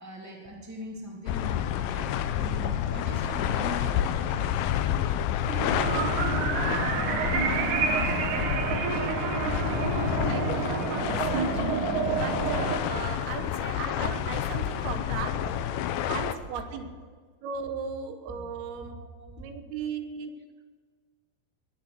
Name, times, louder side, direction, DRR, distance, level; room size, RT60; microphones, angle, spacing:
voice 1, 0.0-4.6 6.4-7.1 15.4-16.0 16.7-16.8 18.3-18.5 18.7-19.4 20.4-20.5, equal, 5° right, -2 dB, 2.2 m, -41 dB
sound 1, 1.3-16.3, left 10 dB, 80° left, 2.4 m, -29 dB
sound 2, 5.5-12.8, right 6 dB, 65° right, 2.3 m, -29 dB
voice 2, 6.7-8.9 9.6-15.4 16.1-16.9 17.4-19.0 19.4-20.3, right 7 dB, 85° right, 7 dB, 3.0 m, -37 dB
20.0 x 7.3 x 7.9 m, 1.5 s
omnidirectional pair, 4.4 m